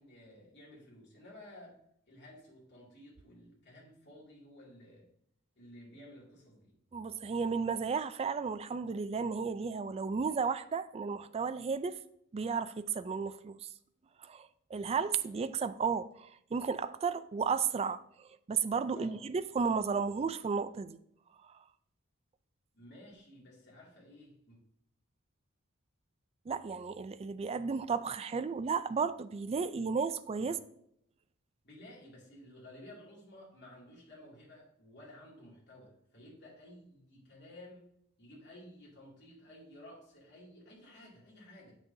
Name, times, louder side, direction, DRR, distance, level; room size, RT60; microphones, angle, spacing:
voice 1, 0.0-1.8 2.1-5.1 5.6-6.8 14.8-14.9 18.9-19.2 22.7-24.6 30.4-30.5 31.6-41.8, left 1 dB, 55° left, 2.5 m, -54 dB
voice 2, 6.9-12.0 12.3-13.7 14.2-21.0 21.5-21.6 26.5-30.6, right 5 dB, 30° right, 0.3 m, -33 dB
7.8 x 6.2 x 2.7 m
head